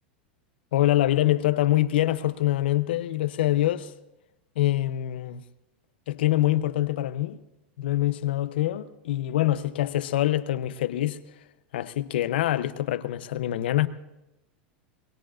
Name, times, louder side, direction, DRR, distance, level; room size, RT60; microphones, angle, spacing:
voice 1, 0.7-3.9 4.6-5.4 6.1-7.4 7.8-11.2 11.7-13.9, left 14 dB, 75° left, 0.7 m, -25 dB
22.5 x 22.5 x 2.5 m
hypercardioid pair, 105°, 6 cm